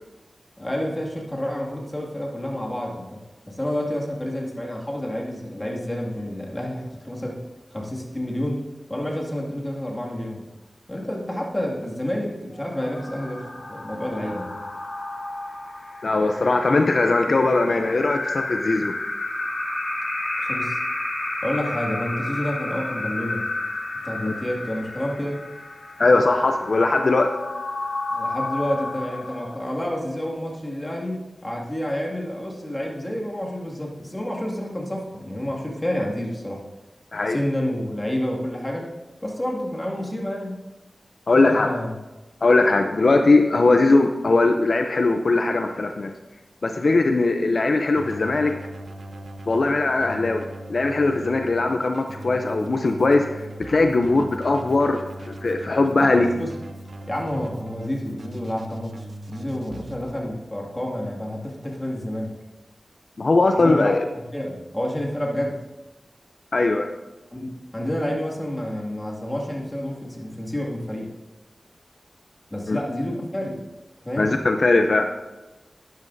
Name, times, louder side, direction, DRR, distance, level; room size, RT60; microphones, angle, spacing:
voice 1, 0.6-3.2 3.5-7.4 7.7-8.6 8.9-10.4 10.9-14.5 20.4-20.8 21.4-23.5 24.0-25.4 28.1-36.6 37.3-38.9 39.2-40.5 41.4-42.0 56.0-56.5 57.1-58.9 59.3-62.4 63.6-65.6 67.3-71.1 72.5-73.6 74.0-74.3, left 1 dB, 20° left, -2 dB, 2.2 m, -29 dB
sound 1, 12.5-29.9, left 2 dB, 85° left, 3.7 m, -31 dB
voice 2, 16.0-18.9 24.2-24.3 26.0-27.3 37.1-37.4 41.3-41.7 42.4-46.1 46.6-48.6 49.5-56.3 63.2-64.0 66.5-66.9 72.7-72.8 74.2-75.1, left 3 dB, 60° left, 5 dB, 0.6 m, -20 dB
Keyboard (musical), 47.9-60.0, right 1 dB, 70° right, 0.9 m, -39 dB
12.5 x 10.5 x 2.7 m, 1.1 s
wide cardioid pair, 65°, 0 cm